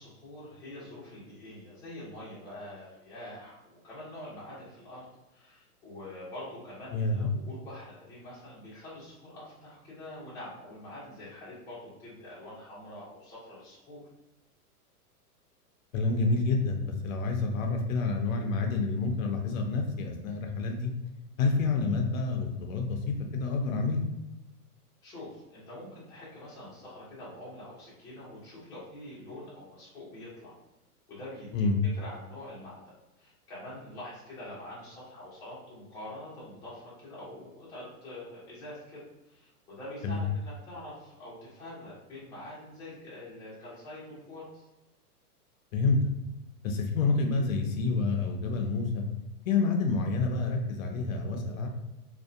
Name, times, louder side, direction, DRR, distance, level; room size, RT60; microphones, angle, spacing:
voice 1, 0.0-14.0 21.4-21.6 25.0-30.6 31.1-31.7 31.9-32.8 33.2-44.7, left 1 dB, 10° left, -9 dB, 0.5 m, -45 dB
voice 2, 6.9-7.3 15.9-20.9 21.4-24.1 31.5-31.7 40.0-40.2 45.7-46.0 46.6-49.0 49.5-51.7, left 3 dB, 60° left, 3 dB, 0.5 m, -28 dB
2.6 x 2.1 x 2.4 m, 0.99 s
hypercardioid pair, 145°, 46 cm